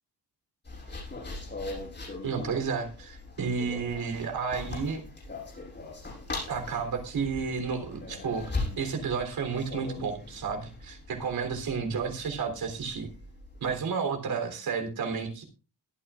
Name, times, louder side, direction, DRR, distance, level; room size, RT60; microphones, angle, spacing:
sound 1, 0.6-13.8, left 2 dB, 25° left, 7.0 m, -40 dB
voice 1, 2.2-5.0 6.5-13.1 13.6-15.4, right 5 dB, 65° right, 5 dB, 3.6 m, -31 dB
22.5 x 9.3 x 2.5 m, 0.34 s
wide cardioid pair, 170°, 39 cm